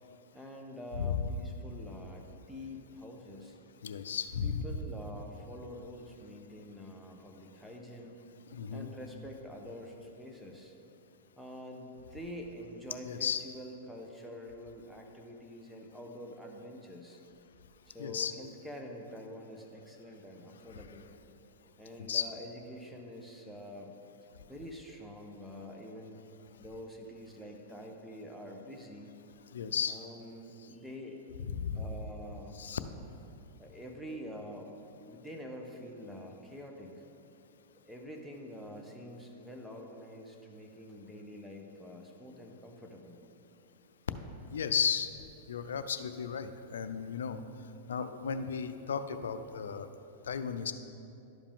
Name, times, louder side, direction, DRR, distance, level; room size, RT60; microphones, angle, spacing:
voice 1, 0.3-3.6 4.4-8.1 8.7-10.7 11.4-17.2 17.9-21.1 21.8-23.9 24.5-26.2 26.6-29.1 29.9-31.2 31.7-32.6 33.6-34.7 35.1-37.0 37.9-43.2, left 1 dB, 5° right, 1 dB, 0.9 m, -46 dB
voice 2, 3.8-4.6 8.5-8.9 13.1-13.4 18.0-18.3 20.7-20.8 22.0-22.2 29.5-30.0 31.5-31.9 32.5-32.8 44.5-45.1 45.5-47.4 47.9-49.9 50.2-50.7, left 7 dB, 90° left, 11 dB, 0.4 m, -34 dB
12.0 x 5.0 x 3.6 m, 2.8 s
hypercardioid pair, 125°, 0 cm